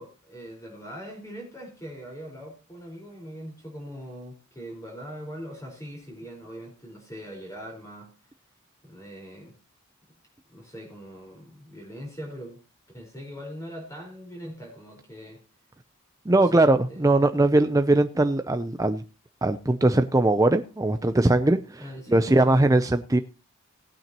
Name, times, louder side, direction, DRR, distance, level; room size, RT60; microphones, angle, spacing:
voice 1, 0.0-8.1 8.8-9.5 10.5-12.6 12.9-15.4 16.3-16.6 16.9-17.0 21.8-22.7, equal, 15° left, 0 dB, 4.7 m, -41 dB
voice 2, 16.3-19.0 19.4-23.2, right 2 dB, 15° right, 8 dB, 0.5 m, -21 dB
18.5 x 9.1 x 2.9 m, 0.33 s
head